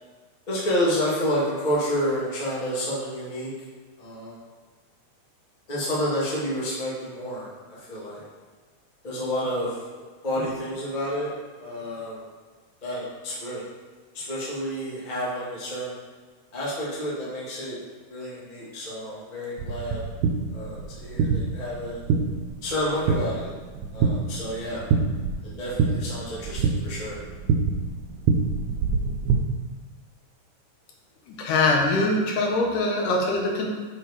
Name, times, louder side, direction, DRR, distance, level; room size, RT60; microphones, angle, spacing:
voice 1, 0.5-3.5 4.0-4.4 5.7-7.5 7.8-8.2 9.0-9.8 10.2-12.2 12.8-13.6 14.1-15.9 16.5-17.8 18.1-20.0 20.5-22.0 22.6-23.5 23.9-24.8 25.4-27.2, equal, 25° left, -7 dB, 1.1 m, -29 dB
sound 1, 19.6-29.4, right 5 dB, 85° right, 2.2 m, -26 dB
voice 2, 31.3-33.7, left 2 dB, 80° left, 0 dB, 2.5 m, -23 dB
6.3 x 4.5 x 4.7 m, 1.4 s
omnidirectional pair, 3.7 m